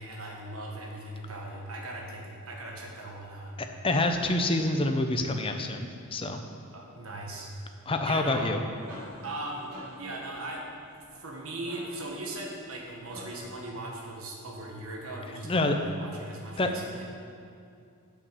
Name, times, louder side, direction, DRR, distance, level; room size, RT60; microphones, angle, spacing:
voice 1, 0.0-3.6 6.7-7.5 8.1-8.5 9.2-9.7 10.0-17.0, right 2 dB, 70° right, 0 dB, 1.5 m, -39 dB
voice 2, 3.8-6.4 7.9-8.6 15.4-15.8 16.6-16.7, left 2 dB, 25° left, 5 dB, 0.6 m, -27 dB
sound 1, 8.5-13.6, equal, 90° right, 2.6 m, -48 dB
8.5 x 5.8 x 6.8 m, 2.5 s
head